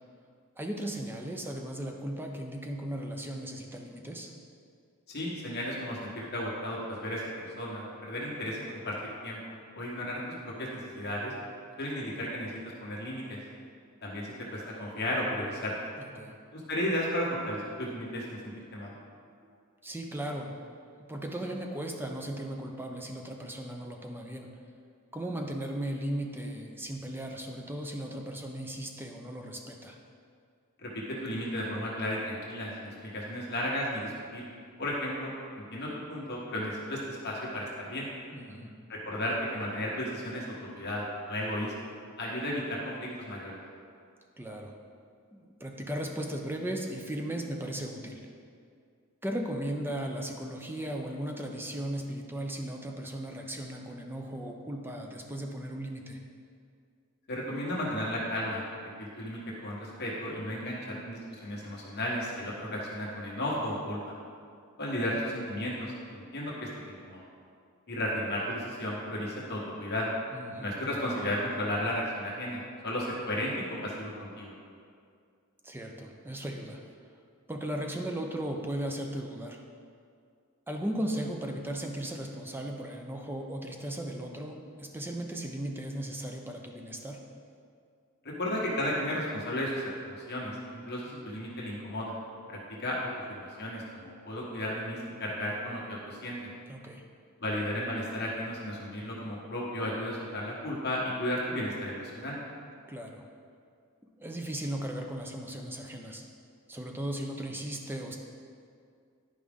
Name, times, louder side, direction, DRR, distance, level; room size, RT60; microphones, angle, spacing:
voice 1, 0.6-4.3 16.0-16.4 19.8-20.6 21.1-24.5 25.1-30.0 38.3-38.8 44.4-44.7 45.3-48.3 49.2-56.2 70.3-70.7 75.6-76.8 77.5-79.6 80.7-87.3 96.7-97.0 102.9-103.3 104.0-106.2 106.7-108.2, right 1 dB, 10° right, 2 dB, 0.6 m, -36 dB
voice 2, 5.1-11.3 11.8-12.5 12.8-13.4 14.0-15.7 16.5-18.9 30.8-34.5 34.8-38.1 38.9-41.7 42.2-43.6 57.3-58.6 59.0-64.0 64.8-67.2 67.9-70.1 70.6-74.5 88.4-92.1 92.5-96.5 97.4-102.4, equal, 50° left, -5 dB, 1.3 m, -34 dB
11.0 x 5.0 x 3.6 m, 2.3 s
head